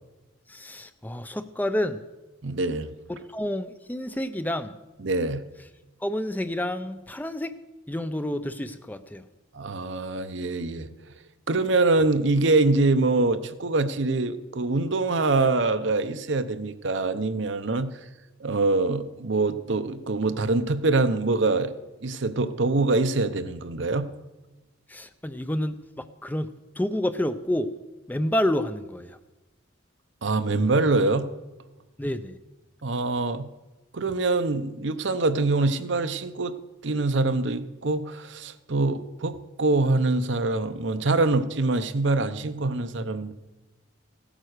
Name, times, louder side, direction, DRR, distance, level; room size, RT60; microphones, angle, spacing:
voice 1, 0.5-2.0 3.1-4.7 6.0-7.6 7.9-9.3 24.9-27.7 28.1-29.2 32.0-32.4, left 1 dB, 10° left, 10 dB, 0.5 m, -29 dB
voice 2, 2.4-2.9 5.0-5.4 9.5-10.9 11.5-17.9 18.4-21.7 22.0-24.1 30.2-31.3 32.8-33.5 33.9-36.5 36.8-43.3, right 3 dB, 65° right, 10 dB, 0.8 m, -24 dB
16.0 x 8.9 x 6.5 m, 1.1 s
head